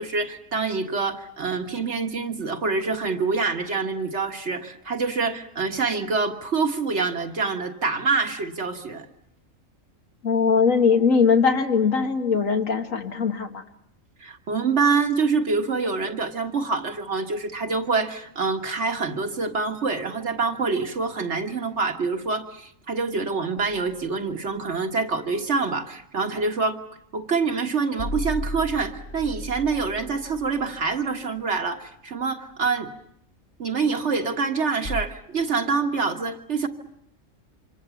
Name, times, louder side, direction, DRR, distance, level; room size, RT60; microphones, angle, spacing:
voice 1, 0.0-9.1 14.2-26.8 27.1-32.9 33.6-36.7, right 4 dB, 60° right, 4 dB, 1.8 m, -26 dB
voice 2, 10.2-13.6, left 5 dB, 90° left, 5 dB, 2.2 m, -20 dB
sound 1, 23.6-24.1 28.0-31.4 34.8-35.0, left 1 dB, 60° left, 2.4 m, -35 dB
27.0 x 25.5 x 7.2 m, 0.76 s
omnidirectional pair, 1.3 m